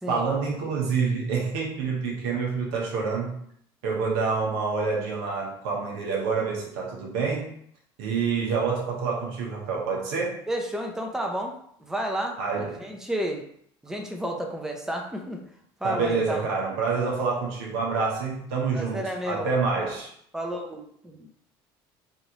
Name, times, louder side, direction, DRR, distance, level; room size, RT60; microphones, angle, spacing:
voice 1, 0.1-3.4 3.8-7.5 8.0-10.4 12.4-12.9 15.8-20.1, right 4 dB, 80° right, -2 dB, 1.0 m, -27 dB
voice 2, 10.5-11.5 11.8-13.4 13.8-15.4 15.8-16.4 18.7-19.5 20.3-21.3, right 1 dB, 5° right, 2 dB, 0.6 m, -31 dB
3.2 x 2.6 x 2.9 m, 0.67 s
supercardioid pair, 85°, 13 cm